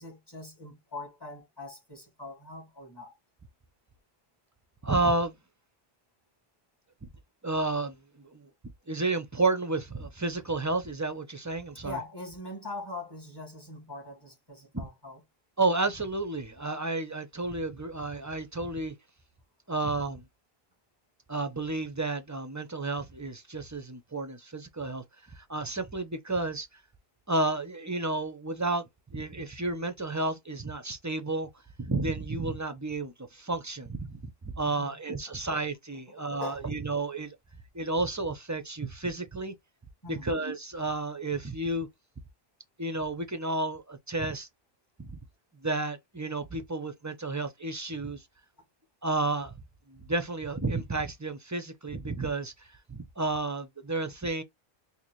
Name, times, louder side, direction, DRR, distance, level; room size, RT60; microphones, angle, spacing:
voice 1, 0.0-3.1 11.8-15.2 34.6-35.0 35.3-35.4 36.1-36.6 40.0-40.3, left 2 dB, 25° left, 1.9 m, -42 dB
voice 2, 4.8-5.3 7.4-7.9 8.9-12.0 14.7-14.9 15.6-18.9 19.7-20.2 21.3-25.0 25.5-26.7 27.3-28.8 29.1-31.5 31.8-34.2 34.6-37.3 37.7-39.5 40.1-41.9 42.8-44.5 45.0-45.2 45.6-48.2 49.0-49.5 50.1-52.5 52.9-54.4, right 2 dB, 25° right, 0.5 m, -31 dB
4.2 x 2.7 x 3.0 m
omnidirectional pair, 1.0 m